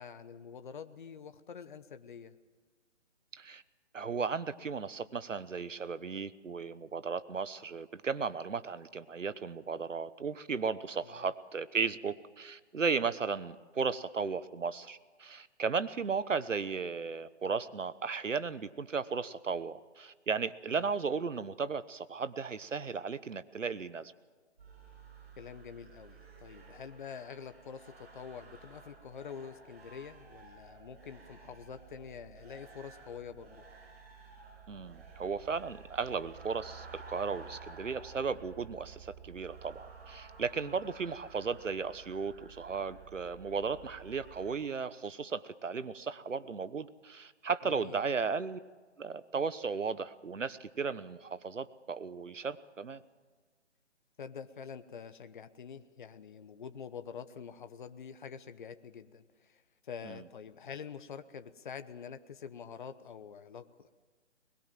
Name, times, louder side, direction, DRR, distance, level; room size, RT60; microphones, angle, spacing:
voice 1, 0.0-2.3 11.0-11.3 20.7-20.9 25.4-33.6 40.6-40.8 47.6-48.0 54.2-63.9, left 7 dB, 40° left, 10 dB, 1.0 m, -46 dB
voice 2, 3.9-24.1 34.7-48.6 49.0-53.0 60.0-60.2, right 5 dB, 90° right, 15 dB, 1.2 m, -35 dB
sound 1, 24.6-44.5, right 5 dB, 55° right, 7.0 m, -53 dB
22.0 x 21.0 x 7.6 m, 1.4 s
hypercardioid pair, 160°, 36 cm